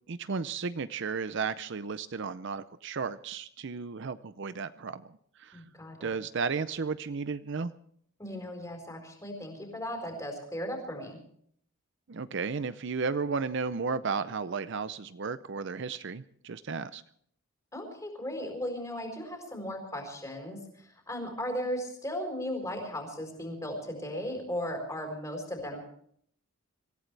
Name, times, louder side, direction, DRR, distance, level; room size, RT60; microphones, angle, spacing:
voice 1, 0.1-5.6 6.0-7.7 12.1-17.0, right 5 dB, 55° right, 13 dB, 0.5 m, -34 dB
voice 2, 5.5-6.1 8.2-11.2 17.7-25.8, equal, 15° left, 3 dB, 4.4 m, -36 dB
25.5 x 15.5 x 3.4 m, 0.63 s
head